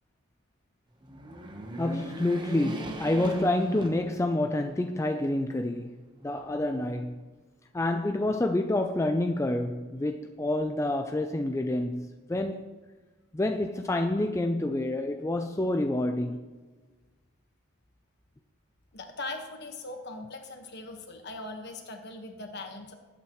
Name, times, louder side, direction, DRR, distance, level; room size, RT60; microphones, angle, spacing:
sound 1, 1.0-4.6 5.1-5.2 6.3-7.1, right 1 dB, 20° right, 1.0 m, -38 dB
voice 1, 1.8-6.0 6.2-7.3 7.7-12.7 13.3-16.6, left 1 dB, 15° left, 0.3 m, -28 dB
voice 2, 18.9-22.9, left 2 dB, 50° left, 1.4 m, -40 dB
19.0 x 8.6 x 3.1 m
head